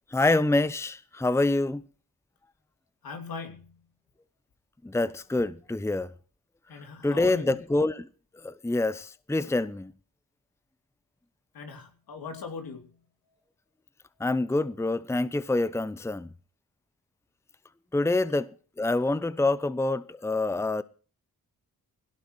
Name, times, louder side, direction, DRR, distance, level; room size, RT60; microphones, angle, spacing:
voice 1, 0.1-1.8 4.8-6.1 7.0-8.1 8.4-9.9 14.2-16.3 17.9-18.5 18.8-20.8, left 2 dB, 5° left, 0.8 m, -26 dB
voice 2, 3.0-3.8 6.7-7.6 11.5-13.0, left 5 dB, 75° left, 3.0 m, -40 dB
17.0 x 17.0 x 3.1 m
cardioid pair, 55°, 36 cm